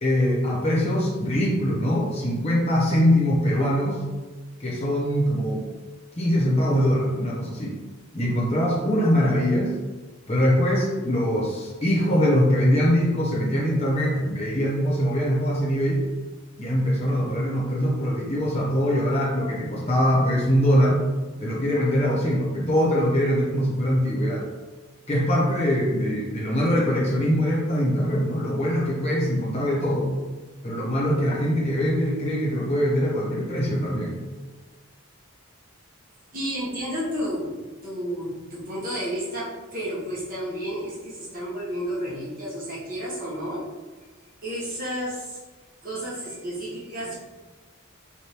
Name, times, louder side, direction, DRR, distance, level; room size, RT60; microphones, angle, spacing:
voice 1, 0.0-4.0 4.6-5.7 6.2-7.8 8.1-9.8 10.3-16.0 16.6-21.0 21.4-24.5 25.1-30.1 30.6-34.2, equal, 30° left, -5 dB, 1.0 m, -23 dB
voice 2, 36.3-43.7 44.4-45.4 45.8-47.1, equal, 40° right, -7 dB, 1.1 m, -31 dB
5.0 x 2.5 x 3.0 m, 1.3 s
head